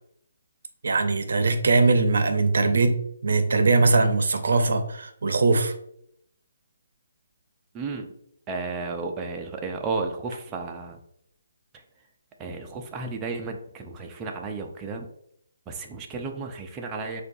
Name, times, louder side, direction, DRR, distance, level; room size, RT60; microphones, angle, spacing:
voice 1, 0.8-5.7, right 3 dB, 65° right, 8 dB, 0.6 m, -21 dB
voice 2, 7.7-8.1 8.5-11.0 12.4-15.1 15.7-17.2, right 4 dB, 15° right, 2 dB, 0.4 m, -33 dB
6.5 x 2.3 x 2.6 m, 0.71 s
hypercardioid pair, 165°, 0 cm